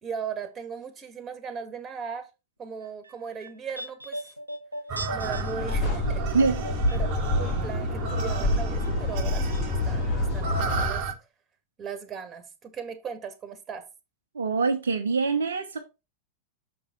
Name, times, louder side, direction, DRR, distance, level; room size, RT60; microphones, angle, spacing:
voice 1, 0.0-2.3 2.6-4.3 5.1-6.2 6.9-7.1 7.4-11.1 11.8-13.9, right 6 dB, 25° right, 1.8 m, -37 dB
sound 1, 2.8-8.0 8.3-9.3 9.5-9.6, equal, 85° right, 0.7 m, -40 dB
sound 2, 4.9-11.1, right 4 dB, 45° right, 1.3 m, -32 dB
sound 3, 5.2-10.9, left 2 dB, 40° left, 4.1 m, -28 dB
voice 2, 14.3-15.8, right 4 dB, 70° right, 1.0 m, -24 dB
6.6 x 5.5 x 4.1 m
figure-of-eight pair, 90°, 0 cm